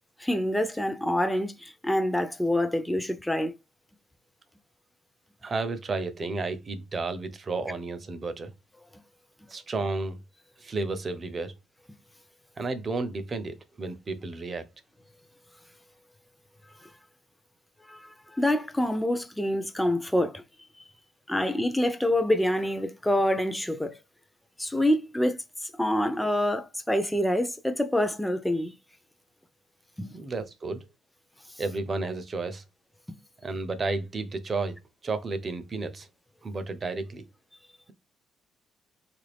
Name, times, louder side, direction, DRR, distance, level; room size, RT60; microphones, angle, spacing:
voice 1, 0.2-3.5 17.9-18.0 18.3-20.4 21.3-23.9 24.6-25.4 25.8-28.7 30.0-30.1, left 1 dB, 5° left, 0.6 m, -26 dB
voice 2, 5.4-8.5 9.5-10.2 10.6-11.5 12.6-14.7 30.1-30.8 31.6-32.6 33.4-36.1 36.4-37.2, right 3 dB, 35° right, 0.7 m, -32 dB
3.6 x 2.5 x 3.4 m
cardioid pair, 85°, 0 cm